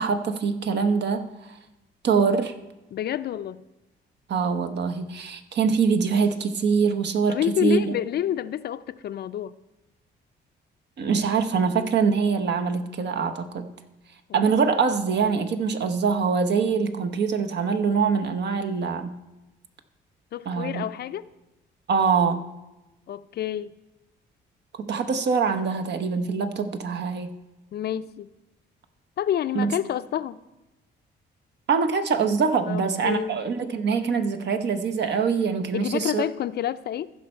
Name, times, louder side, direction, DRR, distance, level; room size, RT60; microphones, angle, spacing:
voice 1, 0.0-1.6 2.0-2.5 4.3-7.4 7.6-8.0 11.0-13.7 14.3-19.1 20.5-20.8 21.9-22.4 24.8-27.4 29.5-29.7 31.7-36.2, right 5 dB, 60° right, 7 dB, 0.9 m, -24 dB
voice 2, 2.9-3.7 7.3-9.5 14.3-14.4 20.3-21.3 23.1-23.7 27.7-28.3 29.2-30.4 32.7-33.3 35.7-37.1, left 11 dB, 55° left, 14 dB, 0.4 m, -28 dB
15.0 x 5.5 x 4.4 m, 0.99 s
cardioid pair, 90°, 20 cm